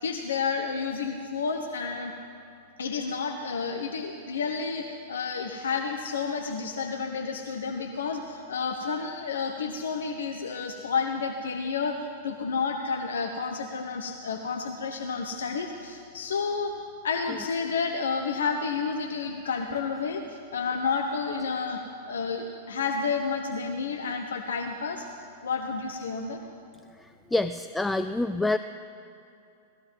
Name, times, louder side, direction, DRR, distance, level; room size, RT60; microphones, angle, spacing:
voice 1, 0.0-2.1 2.8-16.7 17.0-25.1 25.4-26.4, left 5 dB, 65° left, 4 dB, 0.9 m, -30 dB
voice 2, 27.3-28.6, left 2 dB, 5° left, 10 dB, 0.3 m, -26 dB
17.5 x 13.5 x 5.5 m, 2.6 s
figure-of-eight pair, 95°, 0 cm